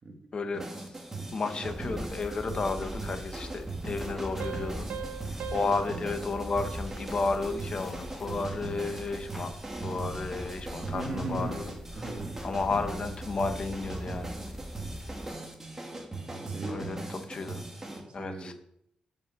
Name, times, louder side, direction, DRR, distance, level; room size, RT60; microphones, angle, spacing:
voice 1, 0.3-0.9 1.3-4.9 5.5-9.5 9.8-11.6 12.4-14.3 16.7-17.6 18.1-18.5, left 3 dB, 35° left, 7 dB, 1.2 m, -32 dB
sound 1, 0.5-18.0, right 2 dB, 15° right, 1.8 m, -39 dB
sound 2, 1.6-15.3, equal, ahead, 1.6 m, -42 dB
sound 3, 4.4-7.7, right 8 dB, 90° right, 1.1 m, -42 dB
voice 2, 10.9-11.6 12.0-12.3 16.3-17.0 18.0-18.5, right 2 dB, 40° right, 3 dB, 1.9 m, -38 dB
11.0 x 5.7 x 6.0 m, 0.74 s
wide cardioid pair, 150°, 3 cm